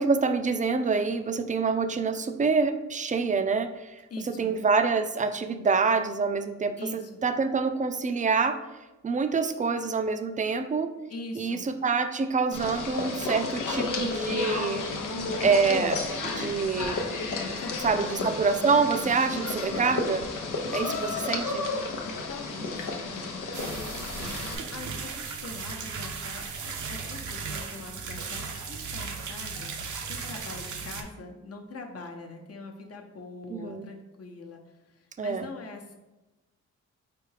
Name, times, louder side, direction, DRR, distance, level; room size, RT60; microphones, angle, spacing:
voice 1, 0.0-4.0 4.3-8.6 9.0-10.9 11.4-14.8 15.4-17.0 17.8-20.3 20.7-21.7 33.5-33.8 35.2-35.5, right 4 dB, 25° right, 9 dB, 0.4 m, -26 dB
voice 2, 4.1-4.5 6.8-7.2 11.1-11.6 17.6-18.5 19.3-19.8 20.7-21.4 22.1-24.1 24.7-28.4 28.7-35.9, left 3 dB, 50° left, 2 dB, 0.8 m, -43 dB
sound 1, 12.5-24.6, left 3 dB, 85° left, 0.7 m, -32 dB
sound 2, 23.5-31.0, right 5 dB, 75° right, 0.7 m, -36 dB
4.5 x 3.3 x 3.3 m, 1.1 s
cardioid pair, 65°, 31 cm